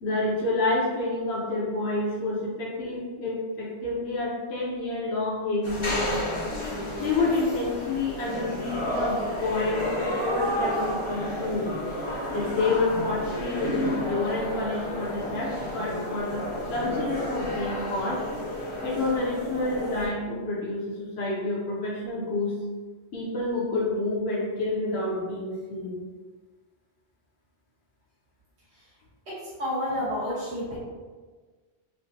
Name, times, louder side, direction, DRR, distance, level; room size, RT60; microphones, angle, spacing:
voice 1, 0.0-6.3 7.0-11.7 12.3-18.2 18.8-22.5 23.1-26.0, left 2 dB, 80° left, -6 dB, 1.0 m, -29 dB
sound 1, 5.6-20.1, equal, 35° left, 0.6 m, -31 dB
voice 2, 29.6-30.8, equal, 75° right, -11 dB, 1.4 m, -29 dB
5.7 x 2.1 x 2.6 m, 1.4 s
omnidirectional pair, 1.1 m